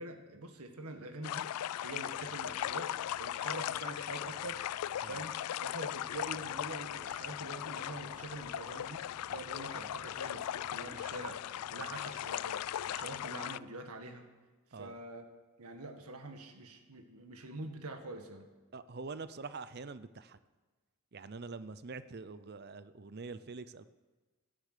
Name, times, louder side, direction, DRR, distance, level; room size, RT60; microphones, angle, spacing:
voice 1, 0.0-1.5 1.8-2.9 3.2-4.6 5.1-5.3 5.6-9.0 9.3-14.3 14.8-15.3 15.6-18.5, right 2 dB, 85° right, 6 dB, 1.8 m, -45 dB
sound 1, 1.2-13.6, left 11 dB, 85° left, 0.3 m, -38 dB
sound 2, 2.1-13.3, equal, 60° left, 2.9 m, -63 dB
voice 2, 18.7-20.4 21.1-23.9, right 4 dB, 45° right, 14 dB, 0.6 m, -45 dB
16.0 x 10.0 x 6.8 m, 1.3 s
head